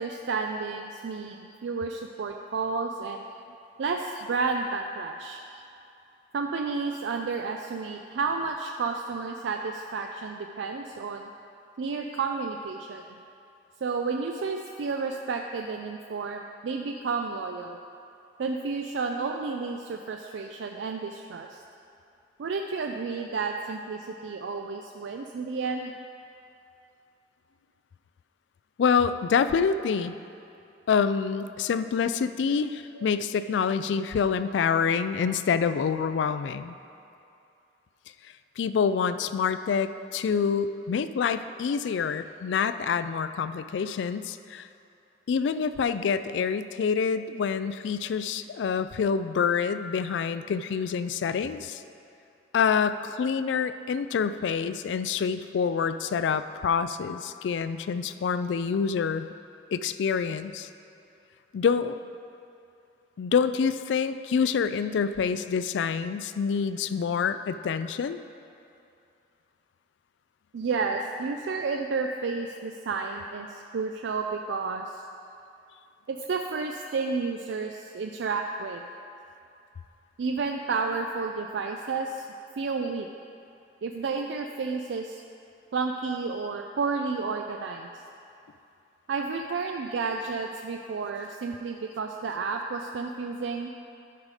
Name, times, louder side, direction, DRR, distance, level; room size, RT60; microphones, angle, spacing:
voice 1, 0.0-1.4 1.6-3.2 3.8-5.4 6.3-11.2 11.8-13.0 13.8-17.8 18.4-21.6 22.4-25.9 33.0-33.1 70.5-75.0 76.1-78.8 80.2-82.2 82.6-83.1 83.8-85.2 85.7-87.9 89.1-93.7, right 4 dB, 85° right, 3 dB, 0.4 m, -31 dB
voice 2, 28.8-30.1 30.9-36.8 38.6-44.7 45.3-51.8 52.5-59.3 59.7-60.7 61.5-62.0 63.2-68.2, left 6 dB, 80° left, 12 dB, 0.3 m, -27 dB
11.5 x 4.9 x 4.9 m, 2.6 s
head